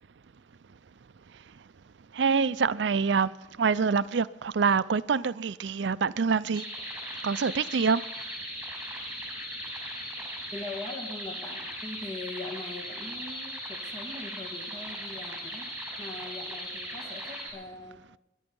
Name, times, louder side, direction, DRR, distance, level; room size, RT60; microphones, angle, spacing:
voice 1, 2.2-3.3 3.6-6.6 7.2-8.0, right 5 dB, 85° right, 0.5 m, -25 dB
sound 1, 6.5-17.5, equal, 5° right, 6.2 m, -38 dB
voice 2, 10.5-13.5 13.9-15.7 16.0-18.0, left 2 dB, 25° left, 2.3 m, -41 dB
21.0 x 11.0 x 5.4 m
head